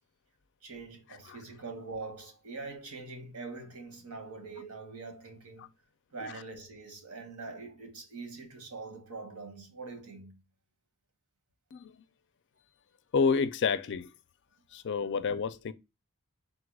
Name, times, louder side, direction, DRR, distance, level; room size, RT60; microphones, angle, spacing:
voice 1, 0.6-5.7 6.1-10.4, right 3 dB, 80° right, 1.3 m, -43 dB
voice 2, 11.7-12.0 13.1-14.1 14.7-15.7, left 5 dB, 55° left, 0.4 m, -30 dB
4.1 x 2.3 x 4.7 m
head